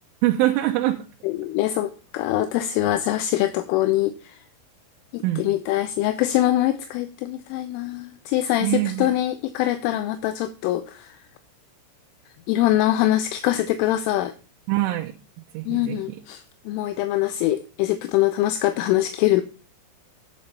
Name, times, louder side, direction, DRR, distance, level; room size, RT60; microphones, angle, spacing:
voice 1, 0.2-1.0 5.2-5.5 8.6-9.1 14.7-15.1 15.5-16.0, right 16 dB, 80° right, 1 dB, 3.1 m, -23 dB
voice 2, 1.2-4.1 5.1-11.1 12.5-14.3 15.7-19.4, left 14 dB, 80° left, 11 dB, 3.0 m, -23 dB
10.0 x 6.5 x 5.5 m, 0.35 s
omnidirectional pair, 6.0 m